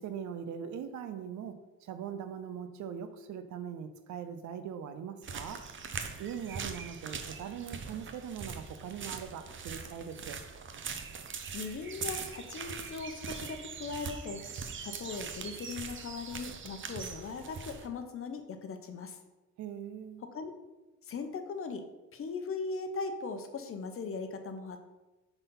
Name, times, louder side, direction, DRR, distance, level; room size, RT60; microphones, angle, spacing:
voice 1, 0.0-5.6 6.2-10.4 19.6-20.2, right 8 dB, 75° right, 10 dB, 0.7 m, -41 dB
sound 1, 5.2-17.9, right 5 dB, 40° right, 0.7 m, -41 dB
voice 2, 11.5-14.4 14.8-19.2 20.2-20.5 21.0-21.8 22.1-24.8, left 4 dB, 45° left, 7 dB, 0.9 m, -39 dB
5.5 x 4.1 x 5.4 m, 1.1 s
cardioid pair, 105°, 29 cm